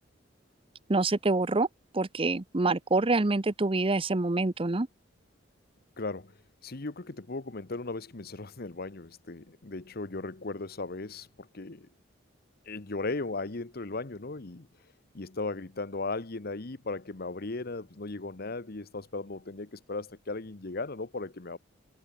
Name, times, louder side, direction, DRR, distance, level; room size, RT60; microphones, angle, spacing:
voice 1, 0.9-1.7 1.9-4.9, right 2 dB, 30° right, 0.8 m, -26 dB
voice 2, 6.0-6.3 6.6-11.9 12.7-14.7 15.1-21.6, left 3 dB, 50° left, 1.1 m, -37 dB
head